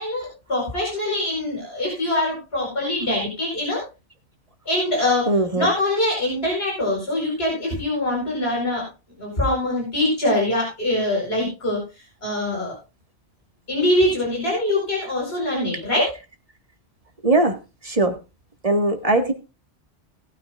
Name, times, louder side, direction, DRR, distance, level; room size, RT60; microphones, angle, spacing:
voice 1, 0.0-3.8 4.6-8.8 9.2-11.8 12.2-12.7 13.7-16.1, left 1 dB, 70° left, -2 dB, 4.9 m, -23 dB
voice 2, 5.3-5.7 17.2-17.5 17.8-18.1 18.6-19.3, right 2 dB, 35° right, 4 dB, 1.8 m, -19 dB
18.0 x 9.7 x 2.5 m, 0.29 s
omnidirectional pair, 1.1 m